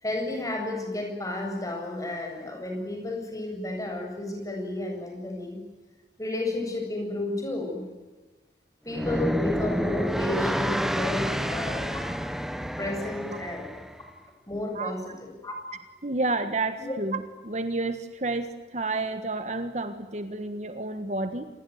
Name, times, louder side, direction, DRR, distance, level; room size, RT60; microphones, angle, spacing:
voice 1, 0.0-5.6 6.2-7.9 8.8-12.1 12.8-13.7 14.0-14.1 14.5-15.5 16.8-17.0, left 2 dB, 20° left, 2 dB, 7.7 m, -32 dB
sound 1, 8.9-14.0, equal, ahead, 1.2 m, -29 dB
voice 2, 16.0-21.5, right 2 dB, 40° right, 9 dB, 1.5 m, -30 dB
27.5 x 21.0 x 9.6 m, 1.2 s
head